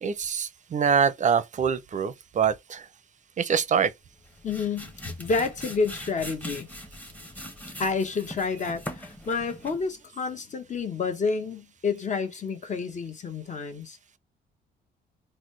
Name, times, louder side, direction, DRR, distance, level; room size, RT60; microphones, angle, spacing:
voice 1, 0.0-2.9 3.4-3.9, right 7 dB, 40° right, 0.5 m, -25 dB
sound 1, 4.1-9.9, equal, 10° left, 1.0 m, -41 dB
voice 2, 4.4-6.7 7.8-14.0, left 4 dB, 40° left, 0.9 m, -29 dB
4.0 x 2.1 x 3.1 m
cardioid pair, 90°, 20 cm